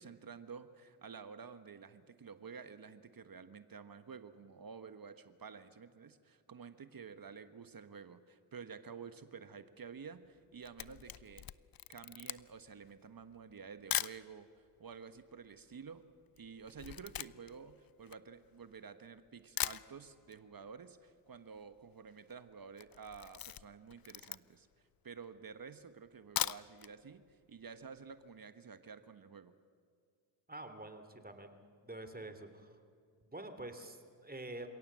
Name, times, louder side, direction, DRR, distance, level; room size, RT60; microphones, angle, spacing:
voice 1, 0.0-11.4 11.9-14.5 14.8-16.0 16.4-24.7 25.0-29.5, right 6 dB, 45° right, 11 dB, 1.4 m, -51 dB
Camera, 10.4-14.2 14.9-15.0 15.2-18.9 19.3-19.4 19.6-20.4 20.7-20.8 21.1-21.2 21.3-21.8 22.1-22.3 22.7-24.7 25.2-25.3 26.1-26.9 27.3-27.4 27.7-27.8, left 11 dB, 50° left, 0.7 m, -41 dB
voice 2, 30.5-31.5 31.8-32.8 33.2-34.7, right 2 dB, 20° right, 8 dB, 2.9 m, -47 dB
29.0 x 17.0 x 7.6 m, 2.2 s
supercardioid pair, 50°, 48 cm